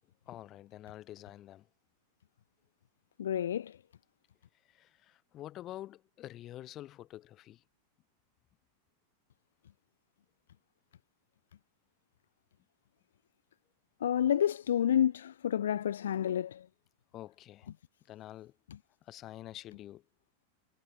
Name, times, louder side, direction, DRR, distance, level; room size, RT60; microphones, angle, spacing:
voice 1, 0.3-1.7 4.7-7.6 17.1-17.7 18.1-18.5 19.1-20.0, left 13 dB, 35° left, 4.0 m, -47 dB
voice 2, 3.2-3.8 14.0-16.7, left 10 dB, 65° left, 0.4 m, -29 dB
figure-of-eight pair, 90°, 0 cm